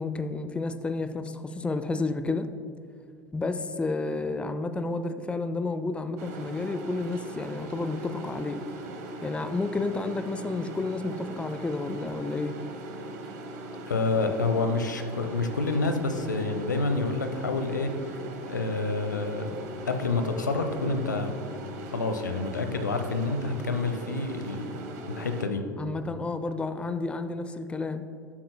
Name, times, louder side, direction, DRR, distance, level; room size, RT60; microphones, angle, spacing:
voice 1, 0.0-2.5 3.3-8.6 9.2-12.6 25.8-28.1, left 3 dB, 10° left, 10 dB, 0.5 m, -31 dB
sound 1, 6.2-25.5, right 1 dB, 65° right, 1.1 m, -40 dB
voice 2, 13.9-17.9 18.5-19.5 19.9-21.4 21.9-24.7 25.1-25.6, left 3 dB, 85° left, 7 dB, 0.7 m, -28 dB
12.0 x 7.6 x 2.2 m, 2.5 s
figure-of-eight pair, 75°, 10 cm